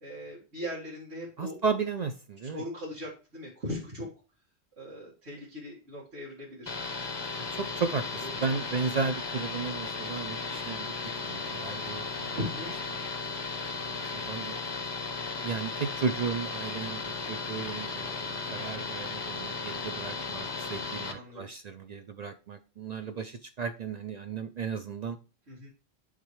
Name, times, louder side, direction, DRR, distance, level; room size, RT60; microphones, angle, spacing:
voice 1, 0.0-1.6 2.4-4.1 4.8-6.8 8.2-8.3 12.3-12.8 18.4-18.9 21.1-21.5 25.5-25.7, left 1 dB, 75° right, -5 dB, 2.2 m, -39 dB
voice 2, 1.4-2.6 7.5-10.9 11.2-12.4 13.8-14.6 15.4-17.0 17.3-25.2, right 5 dB, 55° right, 8 dB, 0.5 m, -34 dB
sound 1, 6.7-21.1, left 4 dB, 25° left, 0.7 m, -35 dB
10.5 x 3.7 x 3.1 m, 0.34 s
omnidirectional pair, 1.1 m